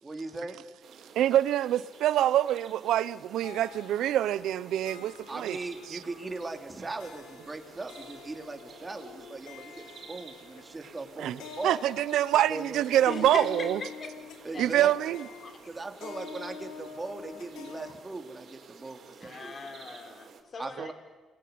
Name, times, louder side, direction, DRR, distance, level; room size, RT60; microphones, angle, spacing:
voice 1, 0.0-0.6 5.3-11.8 12.3-13.3 14.5-14.9 15.7-19.5 20.6-20.9, right 3 dB, 20° right, 3.5 m, -39 dB
sound 1, 0.8-20.4, right 6 dB, 60° right, 4.5 m, -52 dB
voice 2, 1.1-5.6 11.2-11.4 11.6-13.8 14.6-15.3, right 12 dB, 80° right, 0.9 m, -25 dB
sound 2, 3.4-17.9, left 7 dB, 85° left, 1.9 m, -47 dB
voice 3, 13.1-14.1 14.5-14.9 15.4-15.6 19.2-20.9, left 4 dB, 45° left, 5.1 m, -39 dB
28.5 x 21.0 x 9.7 m
cardioid pair, 90°, 0 cm